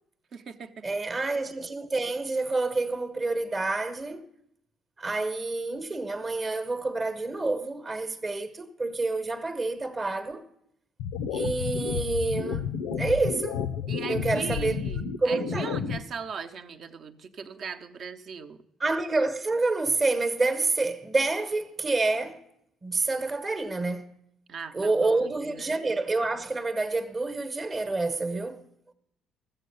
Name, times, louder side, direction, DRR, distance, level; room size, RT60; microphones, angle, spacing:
voice 1, 0.3-1.0 13.9-18.6 24.5-25.8, right 6 dB, 55° right, 0.8 m, -39 dB
voice 2, 0.8-4.3 5.0-10.4 11.3-13.6 14.1-14.8 15.2-15.8 18.8-22.4 22.8-24.1 24.7-28.6, right 3 dB, 30° right, 1.0 m, -28 dB
sound 1, 11.0-16.0, left 7 dB, 85° left, 0.6 m, -31 dB
13.5 x 7.7 x 6.9 m
hypercardioid pair, 60°, 0 cm